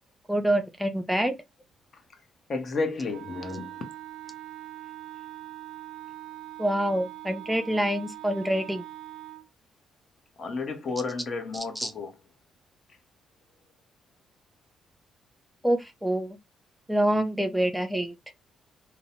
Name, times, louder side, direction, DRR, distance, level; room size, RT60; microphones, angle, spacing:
voice 1, 0.3-1.3 6.6-8.8 11.8-11.9 15.6-16.4 16.9-18.1, right 1 dB, 5° right, 0.4 m, -26 dB
voice 2, 2.5-3.9 10.4-12.1, left 3 dB, 50° left, 0.7 m, -32 dB
Wind instrument woodwind instrument, 3.1-9.5, right 14 dB, 70° right, 0.4 m, -42 dB
2.8 x 2.0 x 2.7 m
cardioid pair, 90°, 0 cm